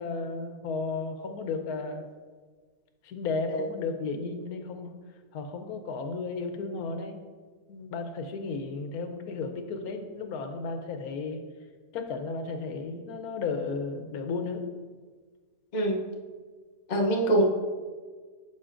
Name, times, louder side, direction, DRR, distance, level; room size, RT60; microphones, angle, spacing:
voice 1, 0.0-2.0 3.0-4.9 5.3-7.2 7.7-11.4 11.9-14.6, left 4 dB, 90° left, 6 dB, 1.2 m, -34 dB
voice 2, 16.9-17.4, right 1 dB, 35° left, 0 dB, 0.8 m, -24 dB
9.5 x 6.2 x 2.5 m, 1.5 s
omnidirectional pair, 1.5 m